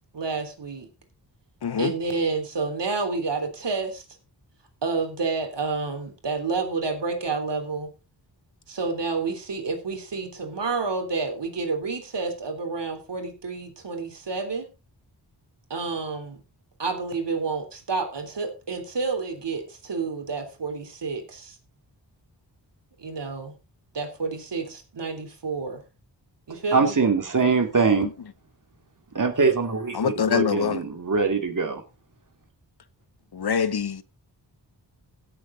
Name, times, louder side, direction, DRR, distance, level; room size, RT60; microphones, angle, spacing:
voice 1, 0.1-0.9 1.8-4.0 4.8-7.9 8.7-14.7 15.7-16.4 16.8-21.6 23.0-23.5 23.9-25.8 26.5-27.0, right 4 dB, 75° right, 3.4 m, -29 dB
voice 2, 26.7-28.1 29.1-31.8, right 4 dB, 45° right, 2.6 m, -23 dB
voice 3, 30.0-30.8 33.3-34.0, left 7 dB, 60° left, 1.0 m, -24 dB
16.0 x 7.5 x 3.9 m
wide cardioid pair, 85°, 43 cm